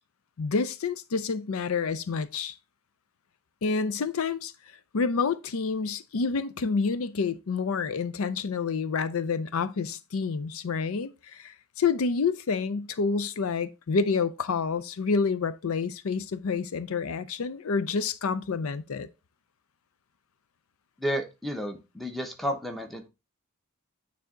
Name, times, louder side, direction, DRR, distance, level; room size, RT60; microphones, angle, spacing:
voice 1, 0.4-2.5 3.6-4.5 4.9-19.1, left 5 dB, 80° left, 0.5 m, -28 dB
voice 2, 21.0-23.1, equal, ahead, 0.8 m, -32 dB
9.2 x 3.4 x 3.7 m
head